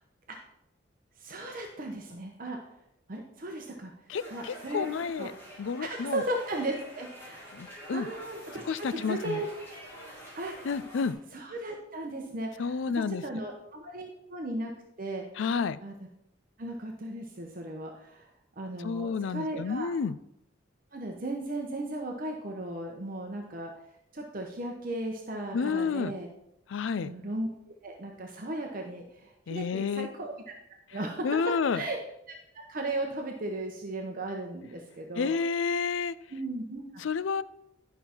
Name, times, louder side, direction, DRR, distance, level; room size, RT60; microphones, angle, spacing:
voice 1, 1.2-2.6 3.1-3.9 4.3-4.9 5.2-5.3 5.8-7.5 7.9-9.5 10.3-10.6 11.3-14.7 15.0-15.2 15.8-15.9 16.6-18.3 18.6-19.9 20.9-23.7 24.1-26.3 27.0-27.5 27.8-30.5 30.9-31.3 31.7-32.0 32.3-35.3 36.3-36.8, right 1 dB, 45° right, 2 dB, 0.9 m, -36 dB
voice 2, 4.1-5.3 5.6-6.2 7.5-8.1 8.7-9.4 10.6-11.2 12.6-13.2 15.4-15.8 18.8-20.2 25.5-26.1 26.7-27.1 29.5-30.1 31.2-31.8 35.2-36.2 37.0-37.4, left 5 dB, 75° left, 15 dB, 0.4 m, -30 dB
sound 1, 4.1-11.1, equal, 10° left, 2.4 m, -47 dB
11.0 x 5.7 x 4.4 m, 0.81 s
head